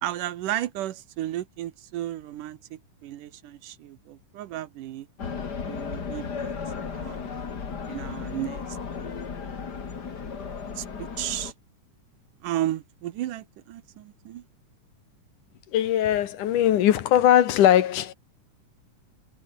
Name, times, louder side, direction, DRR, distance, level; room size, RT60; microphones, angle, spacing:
voice 1, 0.0-5.1 5.7-6.6 6.9-7.2 7.9-9.1 10.8-11.5 12.4-14.5, right 13 dB, 80° right, 2.7 m, -34 dB
sound 1, 5.2-11.5, left 5 dB, 35° left, 2.3 m, -35 dB
voice 2, 15.7-18.1, left 11 dB, 70° left, 2.9 m, -20 dB
omnidirectional pair, 3.8 m